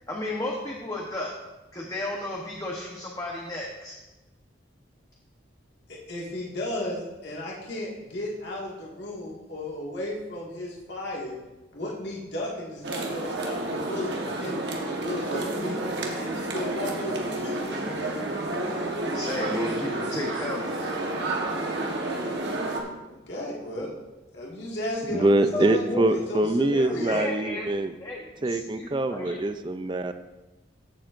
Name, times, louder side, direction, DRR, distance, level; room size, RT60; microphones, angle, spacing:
voice 1, 0.1-1.3 1.7-4.0 19.1-20.9 25.5-26.1 26.5-26.7 27.1-27.7 28.0-29.4, left 1 dB, 20° left, -3 dB, 1.0 m, -33 dB
voice 2, 5.9-11.4 11.7-15.8 16.2-17.8 23.0-23.9 24.3-27.2, left 1 dB, 65° left, -4 dB, 2.0 m, -34 dB
sound 1, 12.8-22.8, right 2 dB, 65° right, 1.3 m, -30 dB
voice 3, 25.1-27.9 28.4-30.1, right 1 dB, 25° right, 10 dB, 0.4 m, -24 dB
15.0 x 7.2 x 2.6 m, 1.1 s
head